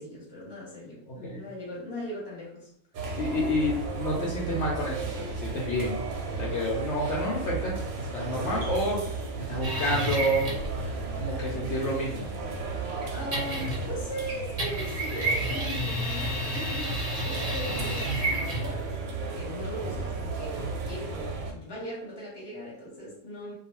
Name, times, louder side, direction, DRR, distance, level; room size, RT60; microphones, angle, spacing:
voice 1, 0.0-2.7 3.3-3.6 12.9-23.5, equal, 20° left, -6 dB, 0.9 m, -39 dB
voice 2, 1.1-1.4 3.2-6.0 6.4-9.2 9.5-10.5 11.2-12.3, equal, 65° left, -4 dB, 0.8 m, -29 dB
sound 1, 2.9-21.5, right 3 dB, 90° right, 1.0 m, -34 dB
sound 2, 9.6-10.7 13.3-14.0 14.6-18.8, equal, 45° right, 0.5 m, -31 dB
2.3 x 2.2 x 3.0 m, 0.72 s
omnidirectional pair, 1.4 m